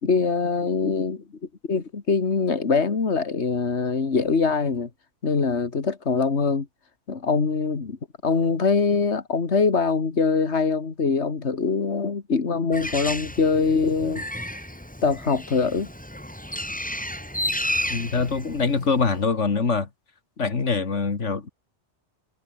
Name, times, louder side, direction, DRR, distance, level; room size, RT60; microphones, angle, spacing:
voice 1, 0.0-1.2 1.7-4.9 5.2-6.7 7.1-8.0 8.2-14.2 15.0-15.9, left 4 dB, 70° left, 2.3 m, -23 dB
Bird, 12.7-19.2, equal, 5° left, 2.9 m, -32 dB
voice 2, 17.9-19.9 20.4-21.5, left 4 dB, 90° left, 2.5 m, -24 dB
omnidirectional pair, 1.2 m